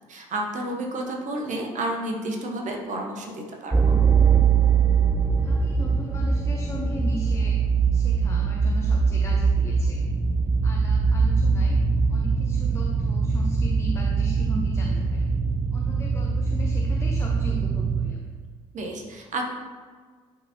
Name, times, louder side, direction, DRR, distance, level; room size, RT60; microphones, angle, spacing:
voice 1, 0.1-3.8 18.7-19.4, right 1 dB, 50° right, 2 dB, 1.1 m, -31 dB
sound 1, 3.7-18.1, right 5 dB, 15° right, 0.5 m, -22 dB
voice 2, 5.4-7.6 7.9-10.0 10.6-11.8 12.1-15.3 15.7-18.2, left 1 dB, 15° left, -1 dB, 0.9 m, -37 dB
11.0 x 3.7 x 2.9 m, 1.6 s
figure-of-eight pair, 45°, 17 cm